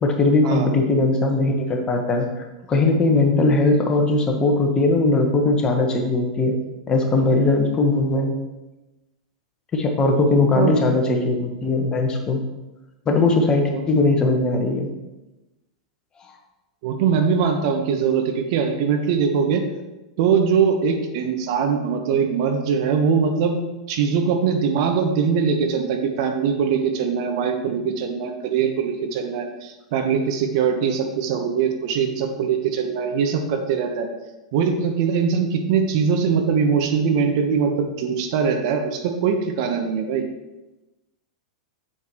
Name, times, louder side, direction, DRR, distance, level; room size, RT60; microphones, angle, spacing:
voice 1, 0.0-2.3 2.7-6.5 6.9-8.3 9.7-12.4 13.1-14.9, left 2 dB, 20° left, 3 dB, 1.3 m, -19 dB
voice 2, 16.8-19.6 20.2-23.6 23.9-34.1 34.5-40.2, right 6 dB, 50° right, 4 dB, 1.1 m, -22 dB
8.4 x 7.1 x 3.1 m, 1.0 s
figure-of-eight pair, 100°, 4 cm